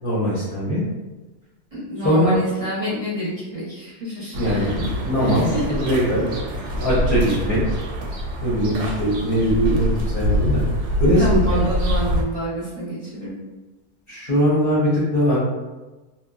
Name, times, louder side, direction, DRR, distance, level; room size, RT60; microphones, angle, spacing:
voice 1, 0.0-0.8 2.0-2.4 4.4-6.2 6.8-7.8 8.4-10.6 11.0-11.7 13.1-13.3 14.1-15.4, equal, 45° left, -9 dB, 0.8 m, -21 dB
voice 2, 1.7-4.7 5.2-5.6 11.2-13.3, equal, 30° right, -10 dB, 0.8 m, -28 dB
sound 1, 4.3-12.2, equal, 85° right, 1.1 m, -25 dB
2.9 x 2.2 x 2.3 m, 1.2 s
omnidirectional pair, 1.6 m